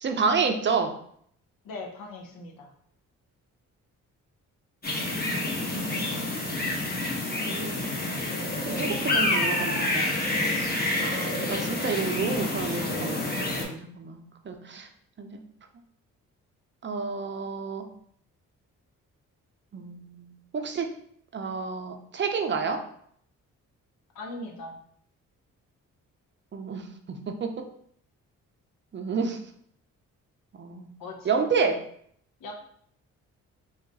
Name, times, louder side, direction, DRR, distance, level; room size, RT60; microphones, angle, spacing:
voice 1, 0.0-0.9 5.7-6.3 7.5-7.8 8.6-10.4 11.0-14.9 15.2-15.4 16.8-17.9 19.7-20.9 21.3-22.8 26.5-27.5 28.9-29.4 30.5-30.9 31.2-31.8, right 5 dB, 35° right, 5 dB, 0.5 m, -30 dB
voice 2, 1.6-2.7 24.1-24.8 31.0-31.4 32.4-32.5, left 2 dB, 70° left, 2 dB, 0.8 m, -39 dB
sound 1, 4.8-13.6, left 2 dB, 25° left, 0.9 m, -28 dB
2.3 x 2.2 x 3.8 m, 0.65 s
supercardioid pair, 55°, 35 cm